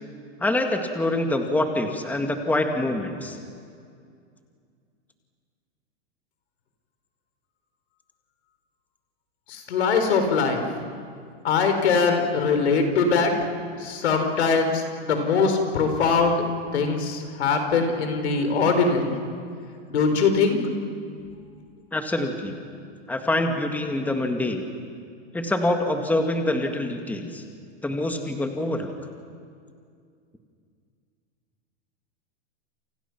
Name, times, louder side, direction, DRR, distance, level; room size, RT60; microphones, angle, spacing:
voice 1, 0.4-3.4 21.9-22.6 23.1-24.6 25.3-27.4 27.8-28.9, left 1 dB, 5° left, 4 dB, 1.9 m, -25 dB
voice 2, 9.7-10.6 11.4-13.3 13.8-16.4 16.7-19.1 19.9-20.6, left 5 dB, 80° left, 6 dB, 4.4 m, -22 dB
29.0 x 28.0 x 6.0 m, 2.3 s
hypercardioid pair, 130°, 33 cm